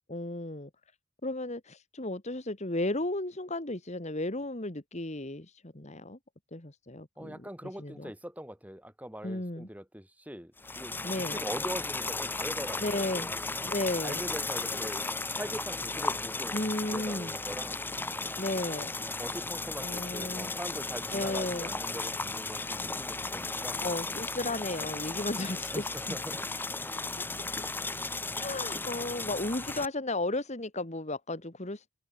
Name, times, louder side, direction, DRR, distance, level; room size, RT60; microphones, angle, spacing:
voice 1, 0.1-0.7 1.2-6.2 6.5-7.4 7.8-8.1 9.2-9.7 11.0-11.4 12.8-13.3 13.6-14.2 16.5-17.3 18.4-18.9 19.8-20.5 21.1-21.7 23.8-26.2 28.4-31.9, left 2 dB, 30° left, 1.8 m, -34 dB
voice 2, 7.2-13.3 14.0-15.0 15.4-16.6 16.9-17.8 19.2-23.9 25.7-26.4, equal, 5° right, 4.9 m, -41 dB
sound 1, 10.6-29.9, left 3 dB, 10° left, 0.7 m, -35 dB
open air
head